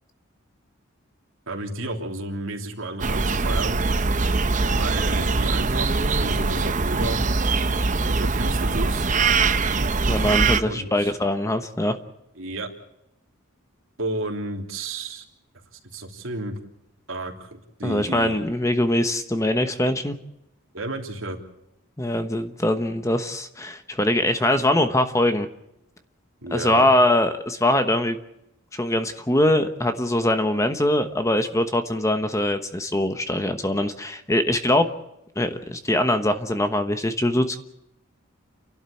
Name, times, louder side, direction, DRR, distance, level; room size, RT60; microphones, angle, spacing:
voice 1, 1.5-3.8 4.7-7.2 8.0-9.1 10.6-11.1 12.4-12.7 14.0-15.2 15.9-16.6 17.1-18.5 20.7-21.4 26.4-26.9, right 2 dB, 70° right, 2 dB, 3.2 m, -32 dB
sound 1, 3.0-10.6, right 3 dB, 35° right, 0.9 m, -22 dB
voice 2, 10.0-11.9 17.8-20.2 22.0-25.5 26.5-28.2 28.7-34.9 35.4-37.6, left 1 dB, 15° left, 8 dB, 1.1 m, -22 dB
29.5 x 12.0 x 8.4 m, 0.85 s
head